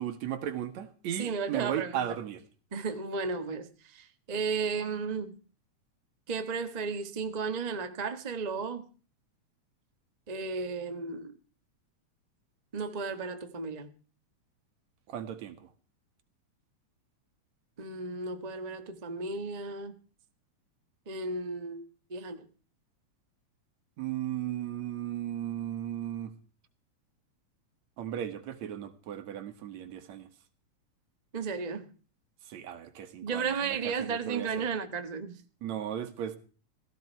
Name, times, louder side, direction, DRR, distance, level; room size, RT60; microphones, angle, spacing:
voice 1, 0.0-2.4 15.1-15.7 24.0-26.3 28.0-30.3 32.4-34.5 35.6-36.4, right 10 dB, 70° right, 2.7 m, -36 dB
voice 2, 1.2-2.0 2.7-5.3 6.3-8.9 10.3-11.4 12.7-13.9 17.8-20.0 21.1-22.5 31.3-31.9 33.2-35.4, right 4 dB, 45° right, 0.5 m, -34 dB
16.5 x 15.0 x 4.5 m
omnidirectional pair, 3.4 m